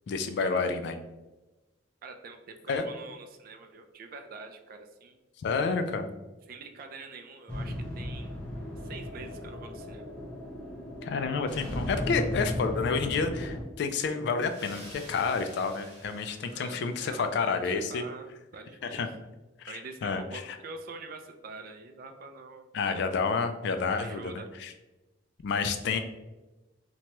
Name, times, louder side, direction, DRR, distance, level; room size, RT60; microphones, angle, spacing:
voice 1, 0.1-1.0 2.7-2.9 5.4-6.1 11.0-18.0 18.8-19.1 19.6-20.2 22.7-24.3 24.6-24.7 25.4-26.0, left 4 dB, 60° left, 8 dB, 0.3 m, -29 dB
voice 2, 2.0-5.2 6.5-8.3 8.8-10.1 16.5-19.0 19.7-22.7 23.9-24.5, right 3 dB, 50° right, 6 dB, 0.3 m, -45 dB
sound 1, 7.5-13.6, left 1 dB, 5° left, 0.6 m, -36 dB
sound 2, 14.3-17.4, right 1 dB, 30° right, 0.8 m, -51 dB
2.9 x 2.2 x 2.9 m, 1.1 s
head